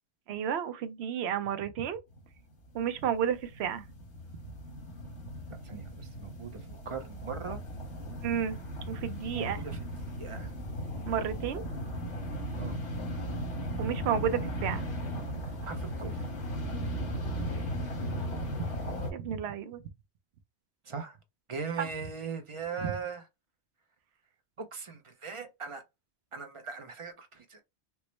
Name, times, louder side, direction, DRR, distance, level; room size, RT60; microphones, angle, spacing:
voice 1, 0.3-2.0 2.7-3.8 8.2-8.6 8.9-9.7 11.0-11.6 13.8-14.8 19.1-19.8 21.8-21.9 22.8-22.9, right 8 dB, 70° right, 0.8 m, -31 dB
sound 1, 2.1-2.3 2.5-19.1, equal, 85° left, 1.6 m, -37 dB
voice 2, 5.6-7.6 9.3-9.8 10.2-10.5 12.5-12.8 15.6-16.3 20.8-21.2 21.5-23.3 24.6-25.8 26.3-27.6, right 5 dB, 40° right, 0.4 m, -39 dB
4.4 x 2.0 x 3.1 m
omnidirectional pair, 1.2 m